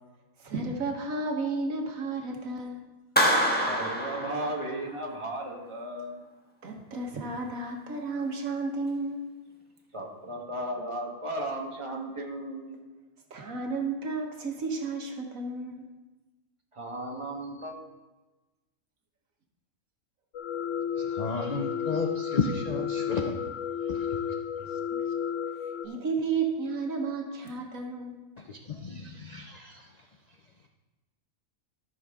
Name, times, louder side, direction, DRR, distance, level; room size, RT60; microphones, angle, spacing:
voice 1, 0.4-2.8 6.6-9.2 13.3-15.9 25.8-28.1, right 3 dB, 75° right, 2 dB, 1.7 m, -32 dB
Clapping, 3.2-5.0, equal, 5° left, 1.2 m, -26 dB
voice 2, 3.7-6.2 9.9-12.8 16.7-17.7, right 1 dB, 20° right, 0 dB, 1.5 m, -35 dB
sound 1, 20.3-25.9, left 8 dB, 70° left, 0.9 m, -32 dB
voice 3, 21.1-23.5 23.9-24.0 28.5-29.8, left 4 dB, 50° left, 3 dB, 0.5 m, -32 dB
13.5 x 6.4 x 3.6 m, 1.1 s
omnidirectional pair, 1.4 m